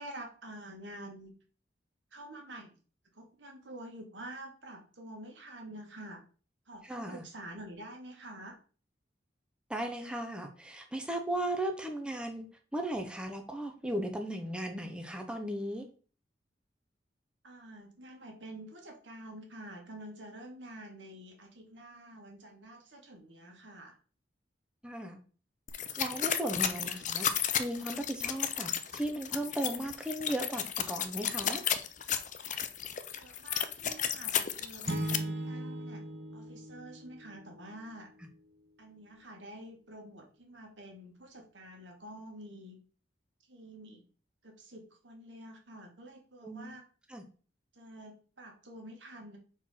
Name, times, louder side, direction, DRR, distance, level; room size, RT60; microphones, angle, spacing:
voice 1, 0.0-1.3 2.1-2.7 3.1-6.2 6.7-8.6 17.4-24.0 33.1-36.0 36.3-38.1 38.8-42.8 43.5-44.0 44.4-46.8 47.7-49.4, right 1 dB, 85° right, 2 dB, 2.0 m, -48 dB
voice 2, 6.9-7.2 9.7-12.5 12.7-15.9 24.8-25.2 26.0-31.6 46.4-46.8 47.1-47.2, right 1 dB, 5° right, 4 dB, 0.8 m, -36 dB
sound 1, 25.7-35.2, left 9 dB, 45° left, 0.6 m, -33 dB
sound 2, 34.8-37.7, right 1 dB, 65° right, 1.6 m, -38 dB
4.5 x 4.5 x 5.8 m, 0.39 s
head